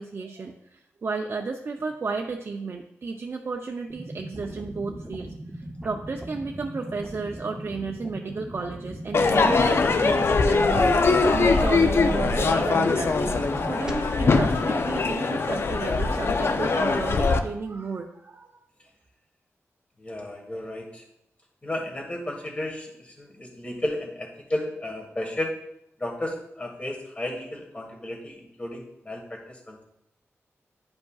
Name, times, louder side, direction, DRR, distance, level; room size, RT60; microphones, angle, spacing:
voice 1, 0.0-18.6, right 4 dB, 50° right, 1 dB, 0.5 m, -33 dB
sound 1, 3.9-13.9, right 1 dB, 15° right, 0.7 m, -39 dB
Crowd / Fireworks, 9.1-17.4, left 3 dB, 55° left, 0.5 m, -22 dB
voice 2, 20.0-21.0 21.6-25.5 26.0-29.8, left 1 dB, 25° left, 1 dB, 1.5 m, -33 dB
10.0 x 5.2 x 2.3 m, 0.81 s
wide cardioid pair, 110°, 5 cm